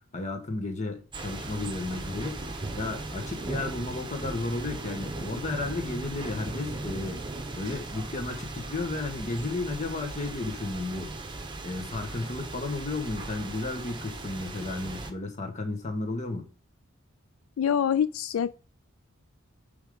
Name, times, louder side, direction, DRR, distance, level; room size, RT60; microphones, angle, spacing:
voice 1, 0.1-2.4 2.7-7.2 7.5-11.1 11.6-16.5, left 2 dB, 35° left, 1.4 m, -33 dB
sound 1, 1.1-15.1, right 2 dB, 20° right, 1.0 m, -38 dB
voice 2, 17.6-18.5, left 8 dB, 80° left, 0.3 m, -25 dB
8.9 x 3.7 x 5.1 m
head